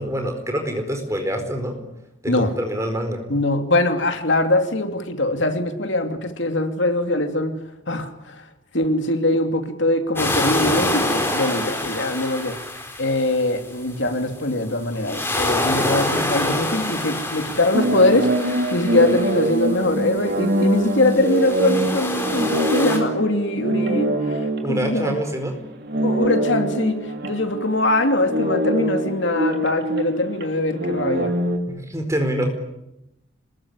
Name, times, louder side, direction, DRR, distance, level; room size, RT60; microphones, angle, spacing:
voice 1, 0.0-1.8 2.2-3.2 24.6-25.6 31.7-32.5, equal, 15° right, 5 dB, 4.5 m, -25 dB
voice 2, 3.3-7.6 7.9-8.4 8.7-12.6 13.0-25.2 25.9-31.3, left 2 dB, 65° left, 7 dB, 2.7 m, -22 dB
sound 1, 10.2-13.9 14.9-20.0 20.8-23.0, left 1 dB, 10° left, 4.4 m, -26 dB
sound 2, 17.7-25.5 25.8-31.6, right 1 dB, 50° right, 3.3 m, -24 dB
26.0 x 21.0 x 10.0 m, 0.88 s
head